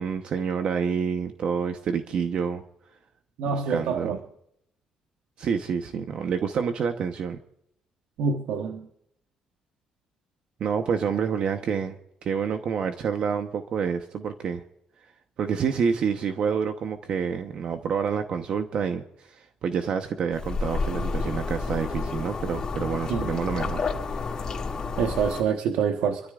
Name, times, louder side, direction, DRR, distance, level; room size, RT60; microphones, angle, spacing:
voice 1, 0.0-2.6 3.5-4.2 5.4-7.4 10.6-12.0 12.2-14.6 15.4-23.9, right 6 dB, 50° right, 6 dB, 1.0 m, -28 dB
voice 2, 3.4-4.2 8.2-8.9 23.1-23.3 25.0-26.2, right 6 dB, 90° right, 4 dB, 1.2 m, -26 dB
sound 1, 20.3-25.4, left 4 dB, 30° left, 2.3 m, -30 dB
26.5 x 13.5 x 2.5 m, 0.75 s
cardioid pair, 140°, 2 cm